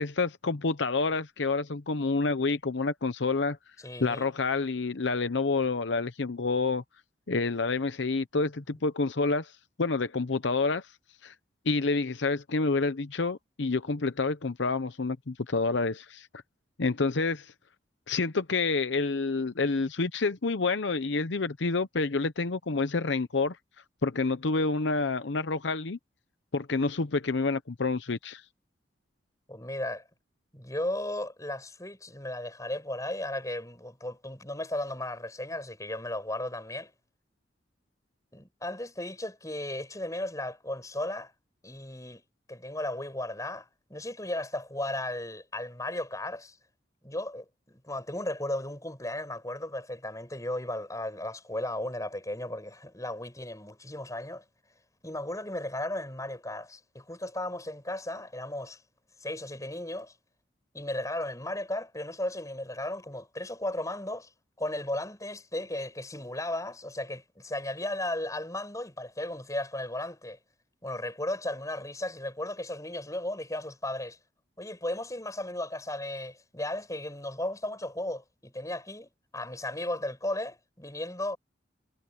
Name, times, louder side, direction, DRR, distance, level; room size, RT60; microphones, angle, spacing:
voice 1, 0.0-3.6 4.0-6.8 7.3-10.9 11.2-11.3 11.7-16.3 16.8-17.5 18.1-23.6 24.0-26.0 26.5-28.4, left 3 dB, 75° left, 0.8 m, -28 dB
voice 2, 3.8-4.3 29.5-30.0 30.5-36.9 38.3-41.3 41.6-42.2 42.5-46.6 47.0-54.4 55.0-58.8 59.2-60.1 60.7-64.3 64.6-70.4 70.8-74.2 74.6-81.4, left 1 dB, 20° left, 7.9 m, -35 dB
head